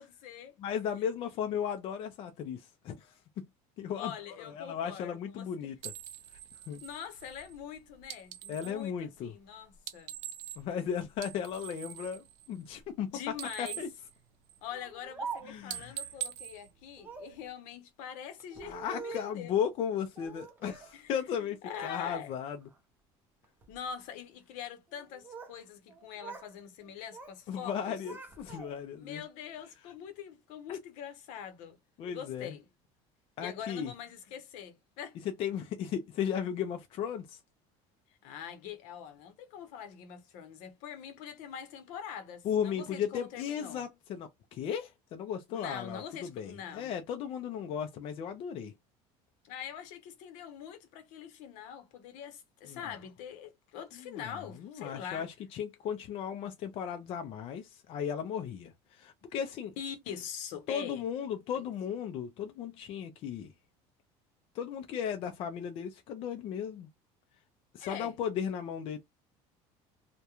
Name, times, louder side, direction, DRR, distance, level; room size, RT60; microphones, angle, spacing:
voice 1, 0.0-0.5 4.0-5.7 6.8-10.1 13.1-13.8 14.6-19.5 20.9-21.1 21.6-22.3 23.7-28.0 29.0-31.8 32.1-32.7 33.4-35.2 38.2-43.8 45.5-46.9 49.4-55.3 59.8-61.0 61.5-61.6 67.8-68.1, left 8 dB, 70° left, 0.7 m, -44 dB
voice 2, 0.6-3.1 3.4-3.5 3.8-4.1 4.4-5.9 6.7-6.8 8.5-9.3 10.6-13.2 13.6-13.9 15.4-16.0 18.6-22.6 27.5-29.2 30.7-30.8 32.0-32.5 33.4-33.9 35.4-37.4 42.4-48.7 52.7-52.9 54.1-54.3 54.6-59.7 60.7-63.5 64.5-66.9 67.7-69.0, left 8 dB, 45° left, 0.4 m, -36 dB
sound 1, 5.8-8.8 9.7-10.8 11.1-13.0 13.3-14.8 15.2-15.4 15.7-17.5, right 12 dB, 65° right, 0.5 m, -44 dB
Speech, 14.7-15.8 17.0-17.4 18.4-19.5 20.2-21.0 21.3-22.0 22.4-22.8 23.4-23.8 24.9-25.6 25.9-26.5 26.8-27.4 27.7-29.0, right 5 dB, 15° right, 0.6 m, -45 dB
2.3 x 2.1 x 2.9 m
cardioid pair, 145°, 13 cm